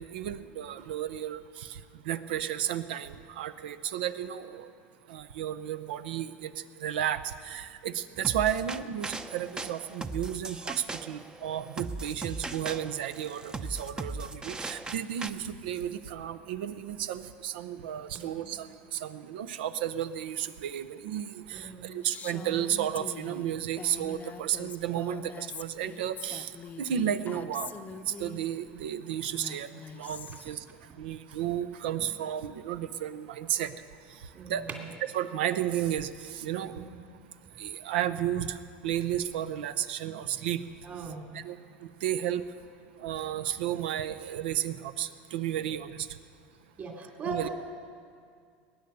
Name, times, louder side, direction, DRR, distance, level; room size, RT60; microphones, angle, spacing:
voice 1, 0.0-4.7 5.1-6.5 6.8-26.5 26.8-27.8 28.2-30.6 31.0-33.7 34.5-34.7 35.1-36.8 37.6-38.6 38.8-40.6 41.3-41.6 42.0-42.4 43.0-46.1 47.3-47.5, right 10 dB, 80° right, 12 dB, 0.7 m, -33 dB
sound 1, 8.2-15.3, right 3 dB, 15° right, 0.6 m, -38 dB
voice 2, 18.1-18.5 21.5-21.9 23.5-23.6 34.3-34.9 36.6-37.1 40.8-41.5 45.6-45.7 46.8-47.5, right 5 dB, 40° right, 0 dB, 2.6 m, -40 dB
Female speech woman speaking, 22.0-28.4 29.2-30.6, left 6 dB, 30° left, 0.7 m, -44 dB
20.5 x 9.7 x 6.8 m, 2.2 s
supercardioid pair, 105°, 5 cm